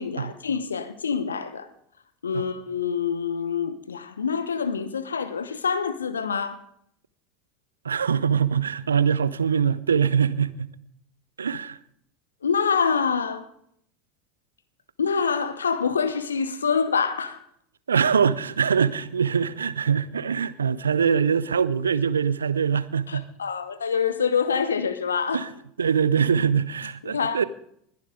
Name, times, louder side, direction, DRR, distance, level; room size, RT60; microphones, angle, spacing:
voice 1, 0.0-1.7 2.2-6.6 12.4-13.5 15.0-17.4 23.1-25.4 27.0-27.4, left 6 dB, 80° left, 0.9 m, -26 dB
voice 2, 7.8-10.7 11.4-11.8 17.9-23.3 25.3-25.5 25.8-27.4, right 7 dB, 80° right, 0.5 m, -23 dB
20.5 x 10.5 x 3.8 m
figure-of-eight pair, 75°, 0 cm